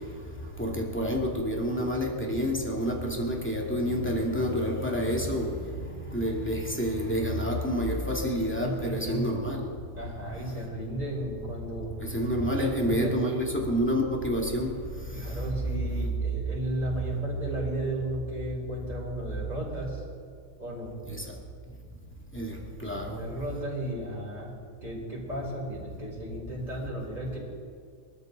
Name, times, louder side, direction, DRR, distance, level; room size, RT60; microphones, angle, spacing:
voice 1, 0.6-5.5 6.1-9.6 12.1-14.7 21.1-21.2 22.3-22.5 22.8-23.2, equal, 5° left, -1 dB, 2.1 m, -28 dB
voice 2, 8.6-9.3 9.9-11.9 12.4-13.4 15.1-20.0 20.6-20.9 22.9-24.5 24.8-27.4, right 1 dB, 20° right, -5 dB, 5.2 m, -34 dB
23.5 x 13.5 x 4.0 m, 2.2 s
omnidirectional pair, 2.4 m